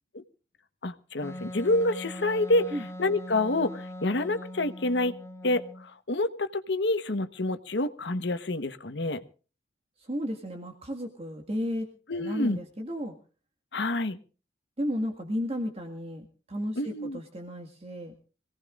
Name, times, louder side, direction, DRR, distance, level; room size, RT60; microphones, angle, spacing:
voice 1, 0.8-2.6 3.0-5.1 5.4-9.2 12.1-12.6 13.7-14.2 16.8-17.2, left 2 dB, 80° left, 11 dB, 1.1 m, -28 dB
Wind instrument woodwind instrument, 1.2-5.9, left 1 dB, 15° left, 1.6 m, -41 dB
voice 2, 10.0-11.9 12.2-13.2 14.8-18.2, equal, 35° right, 3 dB, 1.8 m, -33 dB
25.5 x 17.5 x 2.5 m, 0.37 s
head